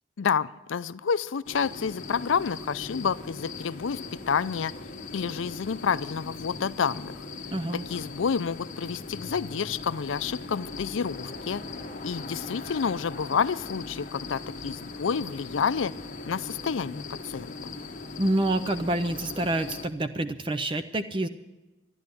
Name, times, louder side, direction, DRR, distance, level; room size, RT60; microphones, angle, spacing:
voice 1, 0.2-4.0 4.3-4.7 5.1-7.1 7.7-11.6 12.0-15.9 16.3-17.5, left 6 dB, 85° left, 16 dB, 0.5 m, -29 dB
sound 1, 1.5-19.9, left 3 dB, 40° left, 1.1 m, -39 dB
voice 2, 7.5-7.9 18.2-21.3, right 1 dB, 25° right, 10 dB, 0.5 m, -27 dB
12.5 x 11.0 x 9.9 m, 1.1 s
head